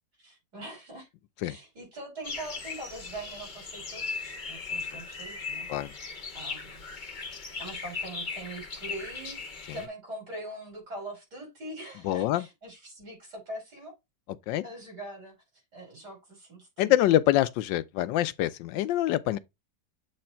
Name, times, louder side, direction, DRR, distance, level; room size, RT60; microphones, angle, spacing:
voice 1, 0.2-1.1 1.4-5.9 6.3-6.8 7.6-9.4 9.7-13.9 14.6-15.4 15.7-16.9 18.7-18.8, right 1 dB, 60° right, 5.5 m, -42 dB
sound 1, 2.2-9.9, left 4 dB, 40° left, 0.7 m, -38 dB
voice 2, 12.0-12.4 14.5-14.6 16.8-19.4, left 14 dB, 85° left, 1.3 m, -25 dB
7.7 x 3.2 x 4.3 m
omnidirectional pair, 2.0 m